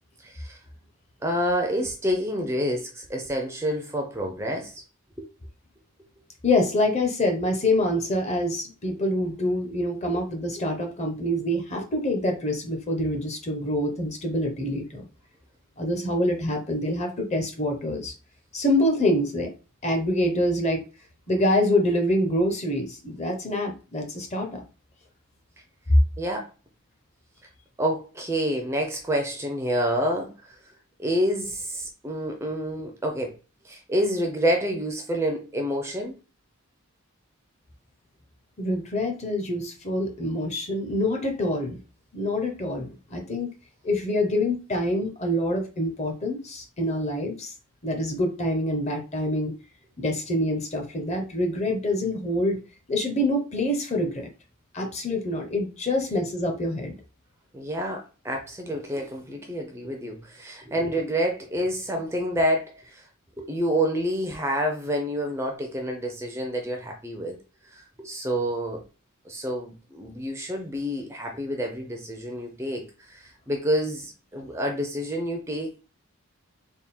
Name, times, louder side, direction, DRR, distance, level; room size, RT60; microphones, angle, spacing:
voice 1, 0.2-0.6 1.2-4.8 5.2-5.3 26.2-26.5 27.8-30.6 31.0-33.4 33.6-36.1 57.5-63.0 63.4-67.4 67.6-68.8 69.3-75.8, equal, 10° right, 0.4 m, -28 dB
voice 2, 6.4-15.0 15.8-18.1 18.5-19.5 19.8-20.8 21.3-24.6 25.9-26.0 38.6-41.8 42.1-43.5 43.8-47.5 47.8-49.5 50.0-52.6 52.9-54.3 54.7-57.0, left 1 dB, 30° left, 0.7 m, -26 dB
3.5 x 2.2 x 4.1 m
head